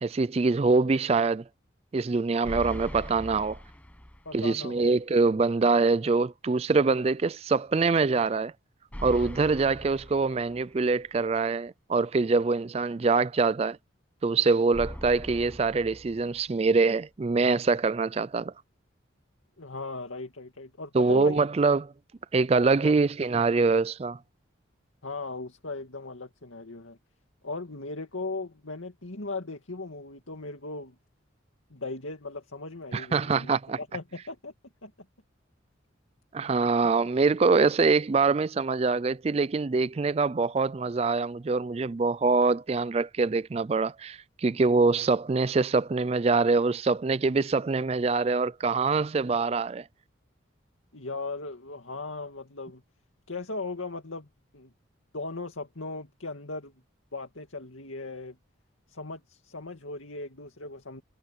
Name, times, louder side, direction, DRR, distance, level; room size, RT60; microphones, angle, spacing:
voice 1, 0.0-1.4 1.9-3.6 4.3-8.5 9.0-13.8 14.2-18.5 20.9-21.9 22.3-24.2 32.9-33.8 36.3-49.9, right 4 dB, 30° right, 0.3 m, -24 dB
sound 1, 2.4-4.5 4.8-4.9 8.9-10.9 14.7-16.7, equal, 5° left, 1.0 m, -41 dB
voice 2, 4.3-4.9 19.6-21.5 22.8-22.9 25.0-27.0 27.4-30.9 31.7-33.5 33.8-34.5 34.8-34.9 50.9-52.8 53.3-54.3 54.5-54.7 55.1-56.7 57.1-58.4 58.9-61.0, left 3 dB, 90° left, 2.4 m, -38 dB
head